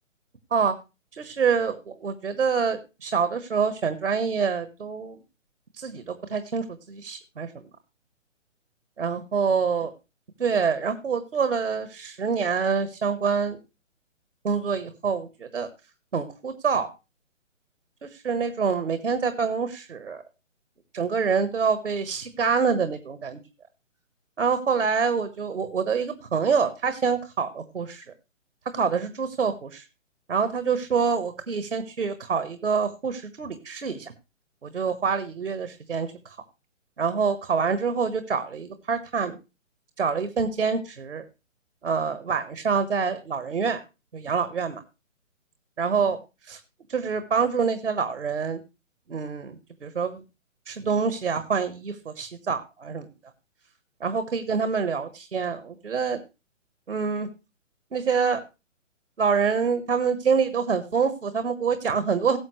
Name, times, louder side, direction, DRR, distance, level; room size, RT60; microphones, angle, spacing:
voice 1, 1.2-5.2 5.7-7.5 9.0-9.9 10.4-13.6 14.4-15.7 16.1-16.9 18.0-20.2 20.9-23.4 24.4-28.1 28.7-29.8 30.3-34.1 34.6-36.4 37.0-39.4 40.0-41.2 41.8-43.8 44.1-44.8 45.8-46.2 46.5-46.6 46.9-48.6 49.1-50.2 50.7-53.1 54.0-56.2 56.9-57.3 57.9-58.4 59.2-62.4, right 5 dB, 65° right, 11 dB, 1.4 m, -26 dB
17.5 x 7.5 x 3.2 m, 0.29 s
figure-of-eight pair, 135°, 39 cm